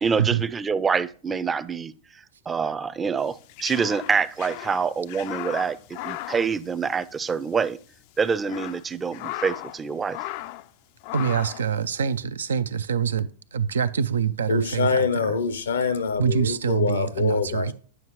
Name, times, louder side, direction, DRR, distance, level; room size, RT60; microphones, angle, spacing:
voice 1, 0.0-1.9 2.5-7.8 8.2-10.2, right 5 dB, 20° right, 0.4 m, -26 dB
sound 1, 3.3-7.4 7.6-7.7 8.2-9.8 10.1-10.7 11.0-11.7, left 15 dB, 55° left, 0.3 m, -36 dB
voice 2, 11.1-15.2 16.2-17.7, right 7 dB, 90° right, 0.5 m, -25 dB
voice 3, 14.5-17.7, left 5 dB, 85° left, 0.7 m, -25 dB
9.2 x 5.7 x 3.1 m
hypercardioid pair, 110°, 0 cm